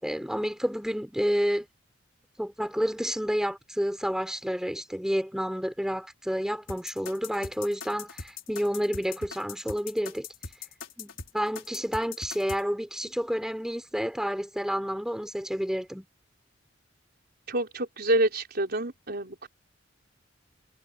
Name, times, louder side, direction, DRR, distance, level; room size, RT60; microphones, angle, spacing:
voice 1, 0.0-1.7 2.4-10.3 11.0-16.0, equal, 5° right, 3.7 m, -30 dB
sound 1, 6.7-12.6, left 5 dB, 80° left, 4.9 m, -40 dB
voice 2, 17.5-19.5, right 1 dB, 55° right, 4.9 m, -27 dB
head